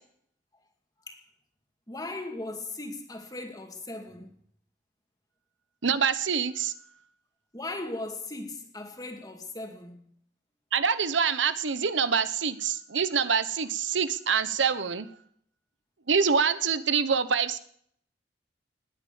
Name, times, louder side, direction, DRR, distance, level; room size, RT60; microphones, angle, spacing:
voice 1, 1.9-4.3 7.5-10.1, left 2 dB, 20° left, 2.4 m, -38 dB
voice 2, 5.8-6.7 10.7-15.1 16.1-17.6, right 6 dB, 85° right, 1.0 m, -25 dB
19.5 x 9.3 x 7.1 m
head